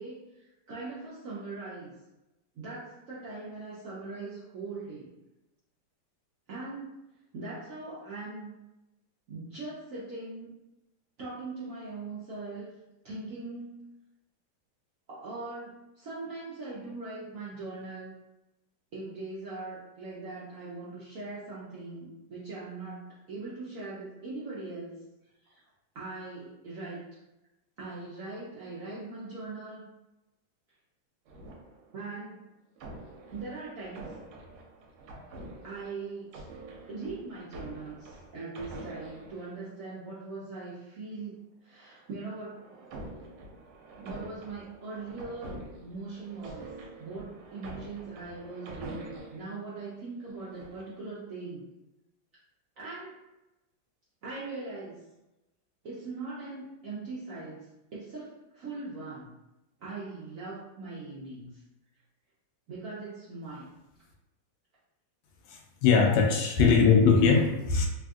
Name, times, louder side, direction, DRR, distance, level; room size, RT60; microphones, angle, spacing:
voice 1, 0.0-1.9 2.5-5.1 6.5-7.0 7.3-8.5 9.3-10.5 11.2-12.7 13.0-13.9 15.1-18.2 18.9-25.0 25.4-25.6 25.9-27.0 27.8-29.8 31.9-32.5 33.3-34.1 35.6-36.4 36.9-41.3 41.6-42.7 44.0-46.7 47.0-51.6 52.8-53.2 54.2-55.0 55.8-59.3 59.8-61.6 62.7-63.7 66.6-66.7, right 3 dB, 70° right, -8 dB, 0.8 m, -40 dB
sound 1, 31.3-32.2 32.8-40.0 41.9-49.6 50.2-51.0, right 2 dB, 85° right, 1.4 m, -46 dB
voice 2, 65.5-67.9, left 5 dB, 80° left, 1 dB, 1.3 m, -21 dB
3.5 x 2.5 x 2.3 m, 0.98 s
omnidirectional pair, 2.1 m